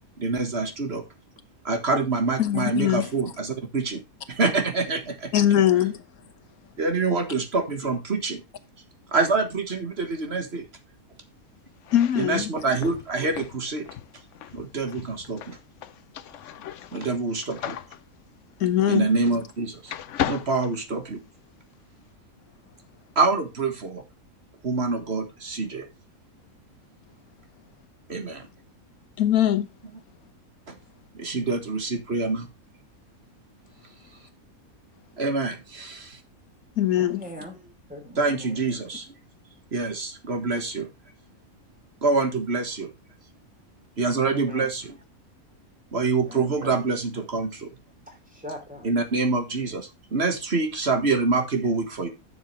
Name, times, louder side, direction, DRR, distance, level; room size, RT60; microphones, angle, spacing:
voice 1, 0.2-1.0 1.6-4.0 4.3-5.3 6.8-8.4 9.1-10.7 12.2-13.9 14.5-15.6 16.9-17.8 18.9-19.9 20.2-21.2 23.2-24.0 24.6-25.9 28.1-28.5 30.7-30.8 31.1-32.5 35.2-36.2 38.2-39.1 39.7-40.9 42.0-42.9 44.0-44.9 45.9-47.7 48.8-52.1, right 3 dB, 45° right, 1.8 m, -26 dB
voice 2, 2.4-3.1 5.3-6.0 11.9-12.5 18.6-19.1 29.2-29.7 36.8-37.2, left 11 dB, 85° left, 1.5 m, -21 dB
sound 1, 11.8-19.6 19.9-21.5, left 10 dB, 65° left, 0.9 m, -36 dB
voice 3, 37.0-38.6 44.3-44.7 46.3-46.8 48.1-48.9, equal, 5° right, 3.2 m, -40 dB
11.0 x 7.0 x 3.2 m
omnidirectional pair, 1.5 m